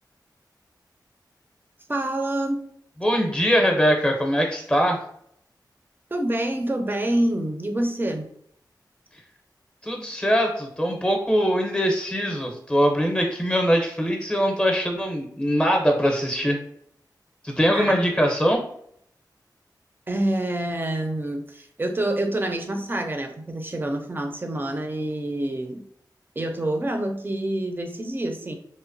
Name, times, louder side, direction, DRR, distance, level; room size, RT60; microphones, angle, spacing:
voice 1, 1.9-2.7 6.1-8.3 17.7-18.0 20.1-25.8 26.4-28.5, right 1 dB, 30° right, 5 dB, 0.5 m, -27 dB
voice 2, 3.0-5.0 9.8-16.6 17.4-18.6, equal, 15° left, 2 dB, 0.6 m, -22 dB
2.9 x 2.1 x 2.5 m, 0.68 s
wide cardioid pair, 60°, 8 cm